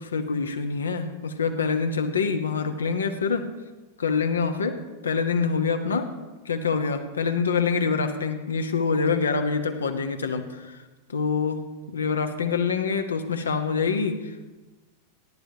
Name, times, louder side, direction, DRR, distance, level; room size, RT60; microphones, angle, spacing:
voice 1, 0.0-3.5 4.0-4.8 5.0-6.1 6.4-10.8 11.1-11.6 11.9-14.5, left 5 dB, 70° left, 7 dB, 1.1 m, -25 dB
19.5 x 11.5 x 2.9 m, 1.2 s
figure-of-eight pair, 90°, 0 cm